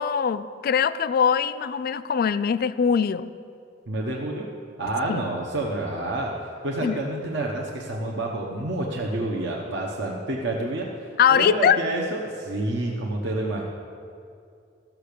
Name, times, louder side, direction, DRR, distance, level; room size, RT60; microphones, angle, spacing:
voice 1, 0.0-3.3 5.1-5.2 6.8-7.0 11.2-11.8, left 7 dB, 55° left, 14 dB, 0.3 m, -22 dB
voice 2, 3.9-4.5 4.8-6.3 6.6-13.6, right 2 dB, 70° right, -2 dB, 1.0 m, -28 dB
13.5 x 5.9 x 6.7 m, 2.5 s
head